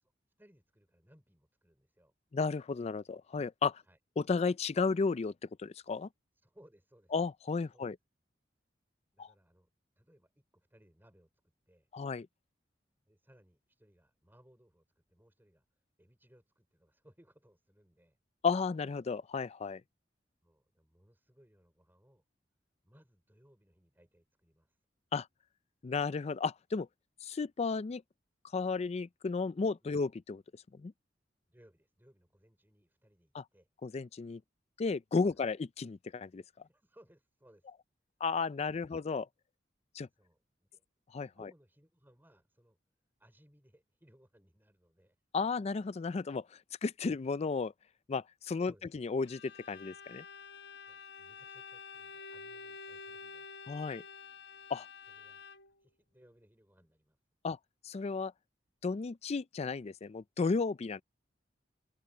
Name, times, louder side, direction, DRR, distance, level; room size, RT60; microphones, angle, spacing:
voice 1, 0.4-2.1 3.8-4.0 6.3-7.1 7.7-7.9 9.1-9.7 10.0-11.3 11.7-11.9 13.0-18.2 20.4-22.2 22.8-24.8 29.8-29.9 31.5-33.7 35.3-35.5 36.6-37.7 38.7-39.0 40.1-40.8 41.3-42.8 43.2-45.2 48.6-48.9 50.9-53.5 55.1-55.5 55.8-57.2, equal, 10° right, 4.1 m, -65 dB
voice 2, 2.3-3.8 4.2-5.3 5.6-6.1 7.1-8.0 9.2-9.3 11.9-12.3 18.4-19.8 25.1-25.3 25.8-26.9 27.2-28.0 28.5-30.4 30.8-30.9 33.3-33.4 33.8-34.4 34.8-36.4 38.2-39.3 39.9-40.1 41.1-41.3 45.3-47.7 48.1-49.4 49.7-50.2 53.7-54.0 54.7-54.9 57.4-57.6 57.8-58.3 58.8-61.0, left 4 dB, 35° left, 0.4 m, -33 dB
Bowed string instrument, 49.3-55.8, left 5 dB, 65° left, 1.1 m, -49 dB
open air
head